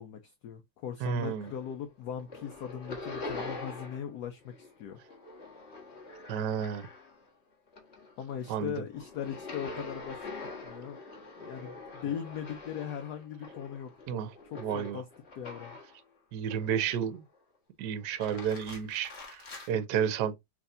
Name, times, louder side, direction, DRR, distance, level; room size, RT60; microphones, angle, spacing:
voice 1, 0.0-5.0 8.2-10.3 10.6-11.0 11.4-13.9 14.4-15.1 15.3-15.8, left 8 dB, 70° left, 0.9 m, -39 dB
voice 2, 1.0-1.5 6.3-6.9 8.5-8.7 14.1-14.3 14.6-15.0 16.3-17.2 17.8-19.4 19.7-20.3, right 8 dB, 65° right, 1.2 m, -31 dB
sound 1, 1.1-1.8 2.1-4.1 4.4-7.3 7.7-16.0 16.5-17.2 18.0-19.7, left 3 dB, 35° left, 1.6 m, -44 dB
6.1 x 3.2 x 2.6 m
omnidirectional pair, 2.3 m